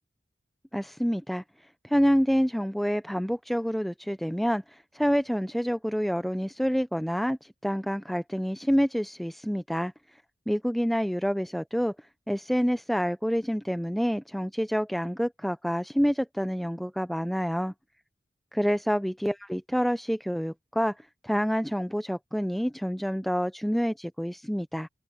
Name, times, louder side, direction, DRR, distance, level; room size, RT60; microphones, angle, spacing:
voice 1, 0.7-1.4 1.8-9.9 10.5-11.9 12.3-17.7 18.5-21.0 21.2-24.9, equal, ahead, 0.4 m, -27 dB
open air
head